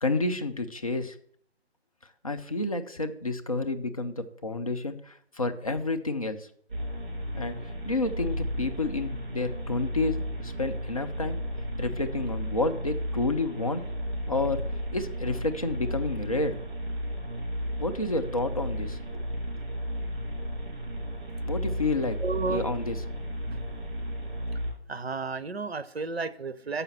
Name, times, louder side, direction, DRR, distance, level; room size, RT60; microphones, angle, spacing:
voice 1, 0.0-1.2 2.2-6.5 7.3-7.5 7.8-11.4 11.8-13.8 14.3-14.6 14.9-16.6 17.8-19.0 21.4-23.0, left 2 dB, 35° left, 6 dB, 0.6 m, -30 dB
sound 1, 6.7-24.7, equal, 50° right, 4.0 m, -34 dB
voice 2, 22.2-22.7 23.4-23.9 24.9-26.8, right 4 dB, 70° right, 14 dB, 0.7 m, -33 dB
6.9 x 5.7 x 7.3 m, 0.66 s
figure-of-eight pair, 155°, 33 cm